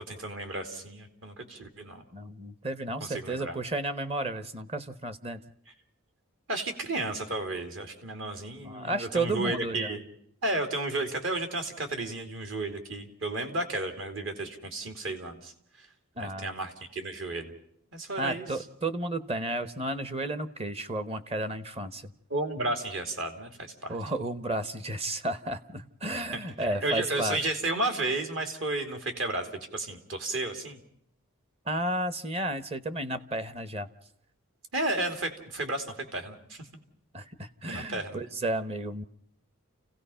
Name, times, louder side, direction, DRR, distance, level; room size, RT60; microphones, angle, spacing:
voice 1, 0.1-2.0 3.0-3.6 6.5-10.0 10.4-15.5 15.8-15.9 16.2-17.5 17.9-18.6 22.3-24.0 26.6-29.5 29.7-30.8 34.7-36.7 37.7-38.2, right 2 dB, 60° right, 6 dB, 2.9 m, -33 dB
voice 2, 2.1-5.4 8.6-10.0 16.2-16.5 18.2-22.1 23.9-27.4 31.7-33.9 37.1-39.0, right 1 dB, 30° right, 13 dB, 1.0 m, -32 dB
29.5 x 16.5 x 5.7 m, 0.70 s
head